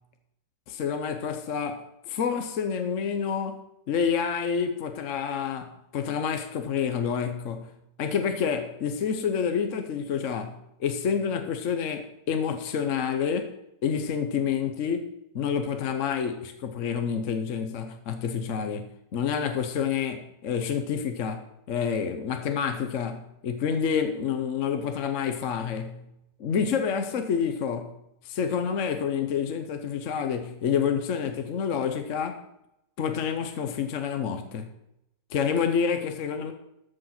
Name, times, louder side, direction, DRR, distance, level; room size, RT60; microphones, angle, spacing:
voice 1, 0.7-7.7 8.0-13.5 13.8-15.1 15.3-26.1 26.4-27.9 28.2-32.4 33.0-34.7 35.3-36.5, left 7 dB, 55° left, 1.0 m, -28 dB
14.0 x 5.1 x 5.8 m
omnidirectional pair, 2.0 m